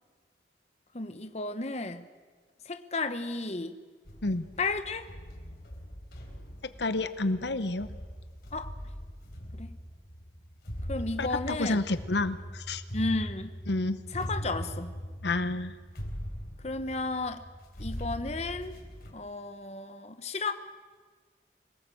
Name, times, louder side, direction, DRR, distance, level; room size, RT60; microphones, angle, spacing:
voice 1, 0.9-2.1 2.7-3.8 4.6-5.1 8.5-8.7 9.5-9.7 10.9-11.8 12.9-13.5 14.1-14.9 16.6-17.4 17.8-18.7 19.1-20.5, left 3 dB, 35° left, 9 dB, 1.0 m, -33 dB
sound 1, 4.0-19.1, equal, 55° left, 4.0 m, -41 dB
voice 2, 6.8-7.9 11.2-12.8 13.7-14.0 15.2-15.7, left 2 dB, 75° left, 12 dB, 0.9 m, -29 dB
25.5 x 18.5 x 7.8 m, 1.5 s
head